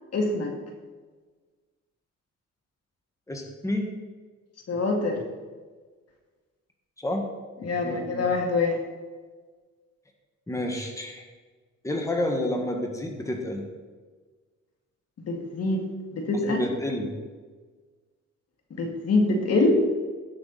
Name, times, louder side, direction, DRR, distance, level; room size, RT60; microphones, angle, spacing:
voice 1, 0.1-0.5 4.7-5.2 7.6-8.8 15.2-16.7 18.7-19.8, left 3 dB, 55° left, 2 dB, 2.2 m, -25 dB
voice 2, 3.3-3.9 7.0-7.2 7.8-8.3 10.5-11.2 11.8-13.6 16.5-17.1, left 1 dB, 10° left, 2 dB, 1.7 m, -29 dB
17.5 x 6.1 x 4.2 m, 1.4 s
cardioid pair, 90°, 30 cm